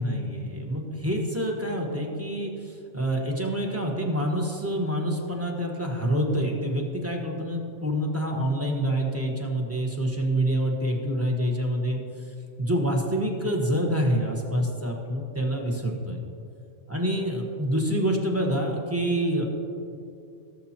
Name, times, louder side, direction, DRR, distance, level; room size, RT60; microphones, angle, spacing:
voice 1, 0.0-12.0 12.6-16.2 16.9-19.6, equal, 10° right, 0 dB, 1.2 m, -27 dB
17.5 x 7.4 x 2.9 m, 2.5 s
omnidirectional pair, 1.2 m